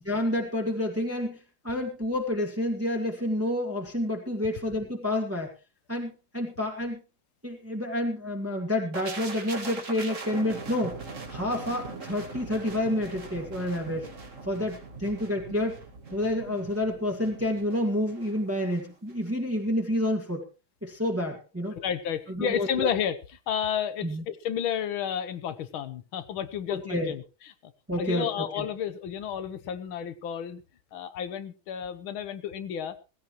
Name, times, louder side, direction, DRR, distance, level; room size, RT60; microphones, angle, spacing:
voice 1, 0.1-1.4 1.6-5.5 5.9-7.0 7.4-11.0 11.3-14.1 14.4-15.8 16.1-20.5 20.8-21.8 22.3-22.9 24.0-24.2 26.7-27.1 27.9-28.7, left 1 dB, 5° right, 1 dB, 1.9 m, -29 dB
sound 1, 8.9-18.8 19.1-19.3, right 3 dB, 40° right, 2.2 m, -41 dB
voice 2, 21.8-27.5 28.0-30.6 30.9-33.0, left 8 dB, 80° left, 13 dB, 1.8 m, -31 dB
17.0 x 15.5 x 3.1 m, 0.30 s
omnidirectional pair, 2.2 m